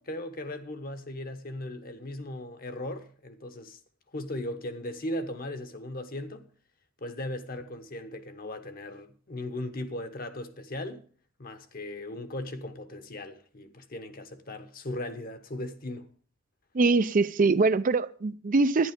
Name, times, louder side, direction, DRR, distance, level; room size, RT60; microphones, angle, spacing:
voice 1, 0.0-3.8 4.1-6.5 7.0-11.0 11.4-16.1, left 1 dB, 50° left, 1.2 m, -37 dB
voice 2, 16.7-18.9, right 3 dB, 40° right, 0.5 m, -23 dB
11.5 x 10.0 x 5.2 m
head